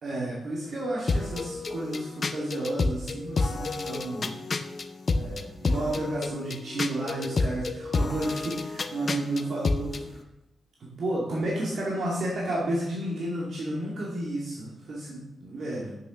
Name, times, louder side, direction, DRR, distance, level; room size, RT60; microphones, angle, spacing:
voice 1, 0.0-4.3 5.1-10.2 10.8-15.9, right 1 dB, 55° right, -4 dB, 2.3 m, -32 dB
sound 1, 1.1-10.0, left 3 dB, 35° left, 0.6 m, -30 dB
8.4 x 6.8 x 6.0 m, 0.89 s
wide cardioid pair, 130°, 0 cm